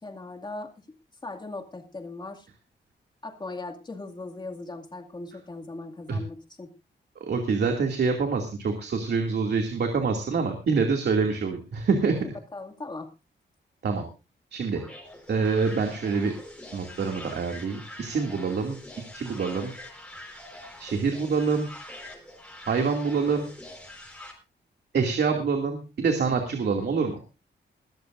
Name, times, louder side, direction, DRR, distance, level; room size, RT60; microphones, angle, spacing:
voice 1, 0.0-0.7 1.2-2.5 3.2-6.7 12.1-13.1, left 2 dB, 25° left, 4 dB, 2.3 m, -39 dB
voice 2, 7.2-12.2 13.8-14.0 14.5-14.8 15.3-16.3 16.7-18.8 19.1-19.7 20.8-21.7 22.7-23.5 24.9-27.2, right 5 dB, 60° right, 4 dB, 2.5 m, -26 dB
sound 1, 14.8-24.3, left 1 dB, 5° left, 4.6 m, -44 dB
21.5 x 13.5 x 2.6 m, 0.29 s
wide cardioid pair, 155°, 19 cm